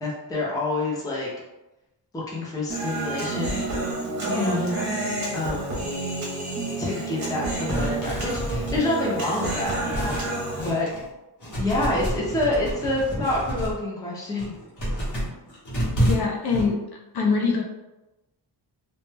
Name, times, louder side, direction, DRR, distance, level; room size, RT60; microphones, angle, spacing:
voice 1, 0.0-1.3 2.1-3.6 4.3-4.7 5.3-5.9 6.8-10.2 10.6-10.9 11.6-14.5, left 2 dB, 10° left, -5 dB, 0.4 m, -27 dB
Human voice, 2.7-10.7, right 2 dB, 40° right, 0.7 m, -29 dB
voice 2, 4.3-5.0 15.9-16.8 17.1-17.6, left 4 dB, 60° left, -1 dB, 0.5 m, -24 dB
sound 1, 7.7-11.1 11.4-13.8 14.2-16.6, equal, 45° left, 0.9 m, -29 dB
2.1 x 2.1 x 3.1 m, 1.0 s
wide cardioid pair, 175°, 43 cm